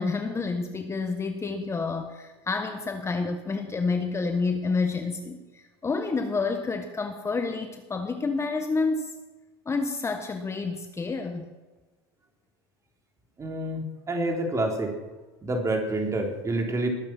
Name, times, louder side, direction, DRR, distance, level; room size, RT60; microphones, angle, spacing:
voice 1, 0.0-9.1 9.6-11.6, left 4 dB, 20° left, 6 dB, 1.3 m, -29 dB
voice 2, 13.4-13.8 14.1-14.9 15.4-16.9, right 2 dB, 25° right, 2 dB, 3.8 m, -27 dB
20.5 x 9.0 x 6.1 m, 1.2 s
hypercardioid pair, 90°, 13 cm